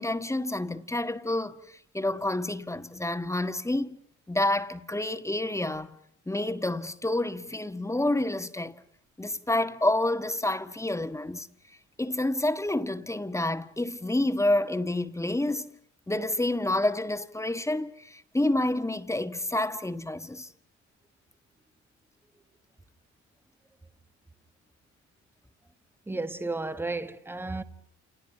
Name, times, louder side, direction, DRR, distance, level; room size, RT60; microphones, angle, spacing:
voice 1, 0.0-4.0 4.3-6.0 6.3-8.7 9.2-11.5 12.0-15.7 16.1-20.5, left 1 dB, 10° left, 1.6 m, -28 dB
voice 2, 26.1-27.6, right 3 dB, 5° right, 1.5 m, -33 dB
29.5 x 29.5 x 5.6 m
cardioid pair, 90°, 30 cm